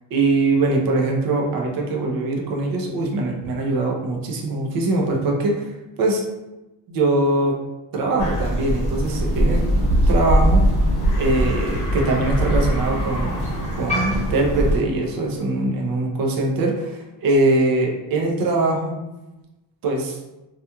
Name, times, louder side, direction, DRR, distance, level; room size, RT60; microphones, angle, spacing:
voice 1, 0.1-6.2 6.9-7.6 7.9-9.7 10.1-10.6 11.2-13.5 13.8-19.0 19.8-20.2, right 2 dB, 45° right, 0 dB, 0.6 m, -22 dB
Crow, 8.2-14.8, equal, 15° left, 0.8 m, -21 dB
sound 1, 10.5-10.7 11.0-15.6, left 1 dB, 45° left, 0.7 m, -38 dB
2.9 x 2.4 x 2.2 m, 1.0 s
cardioid pair, 135°, 49 cm